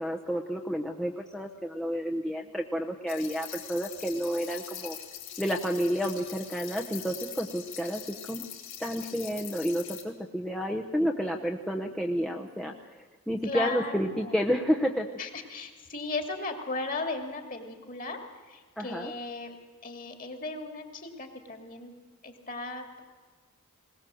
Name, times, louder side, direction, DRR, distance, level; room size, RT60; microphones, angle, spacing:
voice 1, 0.0-5.0 5.4-8.4 8.8-15.1 18.8-19.1, equal, 5° left, 1 dB, 0.8 m, -30 dB
sound 1, 3.1-10.0, left 10 dB, 60° left, 3.4 m, -43 dB
voice 2, 13.4-14.3 15.2-18.2 18.5-19.6 19.8-21.9 22.2-23.0, left 3 dB, 35° left, 5 dB, 2.6 m, -36 dB
20.5 x 19.0 x 7.7 m, 1.4 s
head